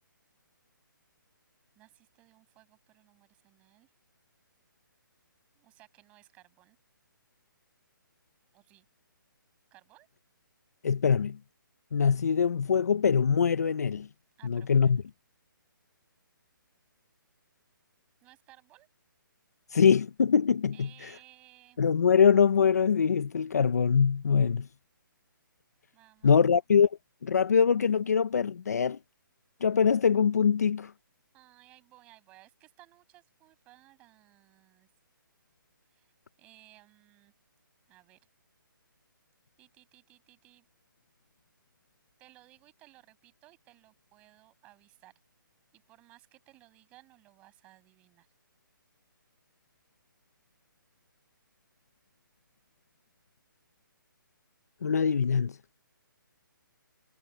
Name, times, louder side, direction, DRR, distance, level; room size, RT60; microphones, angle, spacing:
voice 1, 1.7-3.9 5.5-6.8 8.5-8.9 9.7-10.1 14.4-15.1 18.2-18.9 20.7-21.8 25.9-26.4 31.3-34.9 35.9-36.1 36.4-37.3 37.9-38.2 39.6-40.7 42.2-45.1 45.7-48.3, right 18 dB, 10° right, 6.6 m, -59 dB
voice 2, 10.8-11.4 11.9-14.1 14.4-15.0 19.7-20.9 21.8-24.7 26.2-26.9 27.2-29.0 29.6-30.9 54.8-55.5, left 6 dB, 45° left, 0.7 m, -23 dB
hypercardioid pair, 180°, 11 cm